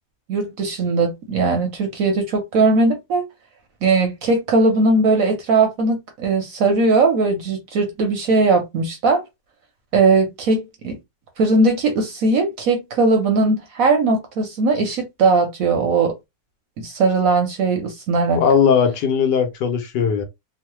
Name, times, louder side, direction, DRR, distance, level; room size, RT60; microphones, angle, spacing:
voice 1, 0.3-3.2 3.8-9.2 9.9-11.0 11.4-16.1 16.8-18.4, right 3 dB, 65° right, 0.8 m, -19 dB
voice 2, 18.4-20.2, left 7 dB, 75° left, 1.2 m, -18 dB
3.0 x 2.1 x 2.9 m
omnidirectional pair, 1.9 m